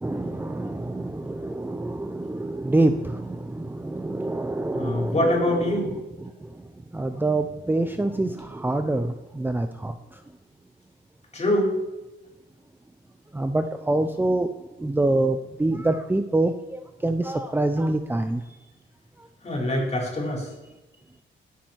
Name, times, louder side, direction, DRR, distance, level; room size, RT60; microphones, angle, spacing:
voice 1, 0.0-5.2 6.9-9.9 13.3-14.5 14.8-18.4, right 2 dB, 10° right, 7 dB, 0.8 m, -26 dB
voice 2, 4.7-5.9 11.3-11.7 19.4-20.5, left 1 dB, 35° left, -1 dB, 5.2 m, -24 dB
17.5 x 8.9 x 4.7 m, 1.1 s
cardioid pair, 90°, 20 cm